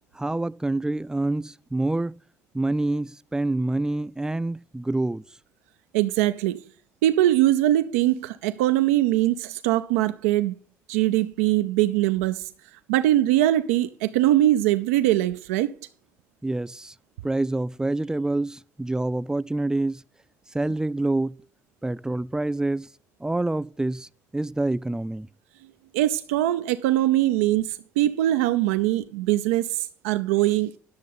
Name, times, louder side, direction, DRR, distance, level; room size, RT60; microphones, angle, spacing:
voice 1, 0.2-2.2 2.5-5.2 16.4-16.9 17.2-20.0 20.5-21.4 21.8-22.9 23.2-24.1 24.3-25.3, right 2 dB, 10° right, 0.4 m, -26 dB
voice 2, 5.9-6.6 7.0-10.5 10.9-12.5 12.9-15.7 25.9-30.7, right 14 dB, 85° right, 0.4 m, -22 dB
10.5 x 6.6 x 5.5 m
hypercardioid pair, 60°, 7 cm